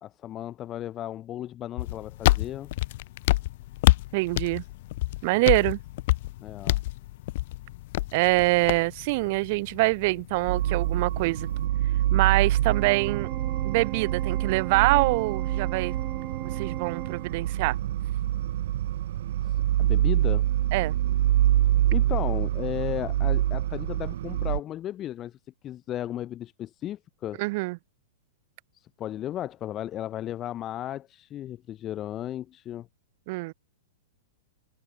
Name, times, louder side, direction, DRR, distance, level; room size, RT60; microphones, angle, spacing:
voice 1, 0.0-2.7 6.4-6.8 19.4-20.5 21.9-25.4 25.6-27.4 28.7-32.9, left 12 dB, 25° left, 1.8 m, -35 dB
sound 1, 1.8-11.6, left 18 dB, 55° left, 0.4 m, -28 dB
voice 2, 4.1-4.6 5.2-5.8 8.1-11.5 12.1-13.3 13.6-16.0 16.6-17.8 20.7-20.9 27.4-27.8 33.3-33.5, right 24 dB, 45° right, 0.5 m, -25 dB
sound 2, 10.5-24.6, right 13 dB, 65° right, 0.9 m, -26 dB
Organ, 12.7-17.7, right 15 dB, 30° right, 1.7 m, -38 dB
hypercardioid pair, 150°, 0 cm